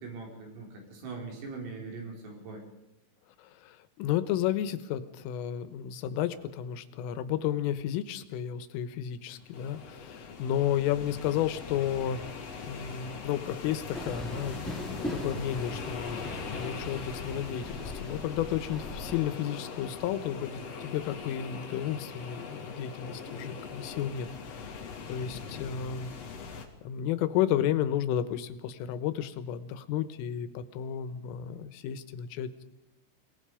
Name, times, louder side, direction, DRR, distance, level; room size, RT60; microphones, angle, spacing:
voice 1, 0.0-2.7, right 4 dB, 85° right, 0 dB, 7.5 m, -41 dB
voice 2, 3.4-26.1 26.8-32.6, left 10 dB, 85° left, 12 dB, 3.7 m, -32 dB
sound 1, 9.4-26.6, left 5 dB, 45° left, 2.2 m, -41 dB
Train, 13.9-19.2, left 1 dB, ahead, 4.1 m, -40 dB
28.5 x 19.0 x 5.0 m, 0.96 s
omnidirectional pair, 5.8 m